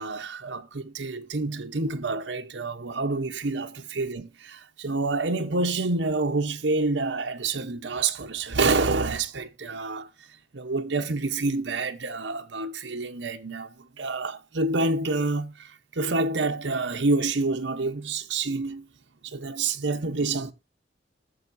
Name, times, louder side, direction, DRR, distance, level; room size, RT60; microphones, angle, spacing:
voice 1, 0.0-10.1 10.5-18.9 19.2-20.5, right 3 dB, 75° right, 0.9 m, -28 dB
20.0 x 7.0 x 2.7 m
head